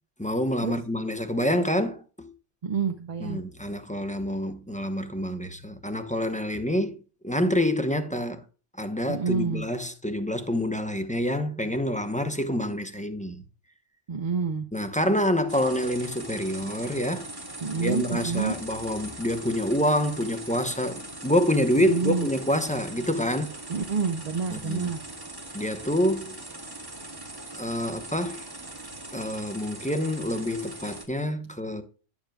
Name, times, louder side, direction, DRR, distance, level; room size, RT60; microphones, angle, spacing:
voice 1, 0.2-2.3 3.2-8.4 8.8-13.4 14.7-17.2 17.7-23.5 24.5-24.9 25.5-26.4 27.6-28.5 29.1-31.8, equal, 10° left, 0.7 m, -27 dB
voice 2, 2.6-3.4 9.1-9.7 14.1-14.7 17.6-18.6 21.8-22.3 23.7-25.0, right 5 dB, 40° right, 0.6 m, -28 dB
sound 1, 15.5-31.1, right 2 dB, 20° right, 1.2 m, -41 dB
10.5 x 7.2 x 2.3 m
omnidirectional pair, 1.2 m